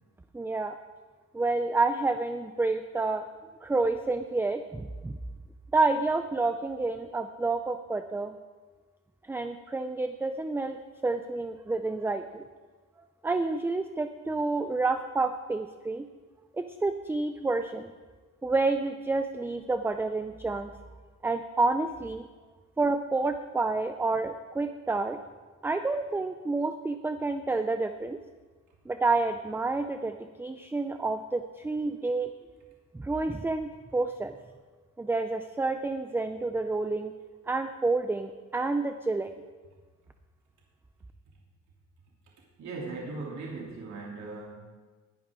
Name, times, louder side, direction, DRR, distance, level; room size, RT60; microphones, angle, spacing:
voice 1, 0.3-0.7 1.3-3.2 3.6-5.2 5.7-8.4 9.2-10.8 11.0-12.4 13.2-16.1 16.5-17.9 18.4-20.7 21.2-22.3 22.8-25.2 25.6-28.2 28.9-32.3 32.9-34.4 35.0-37.1 37.5-39.4, right 3 dB, 5° right, 8 dB, 0.4 m, -29 dB
voice 2, 42.6-44.6, right 3 dB, 60° right, -3 dB, 3.1 m, -38 dB
19.5 x 11.5 x 3.7 m, 1.3 s
cardioid pair, 150°, 32 cm